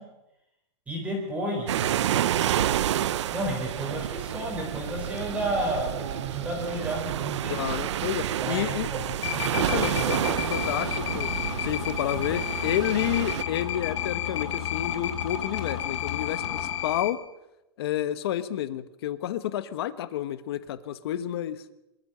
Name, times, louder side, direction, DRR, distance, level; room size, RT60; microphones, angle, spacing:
voice 1, 0.9-2.1 3.3-7.6 8.4-10.2, right 1 dB, 10° right, 0 dB, 4.1 m, -32 dB
sound 1, 1.7-13.4, right 11 dB, 85° right, 0.7 m, -29 dB
voice 2, 7.4-8.9 9.6-17.2 17.8-21.6, left 11 dB, 60° left, 14 dB, 1.3 m, -30 dB
sound 2, 9.2-17.1, left 10 dB, 85° left, 3.1 m, -31 dB
25.5 x 13.5 x 7.9 m, 0.92 s
supercardioid pair, 170°, 15 cm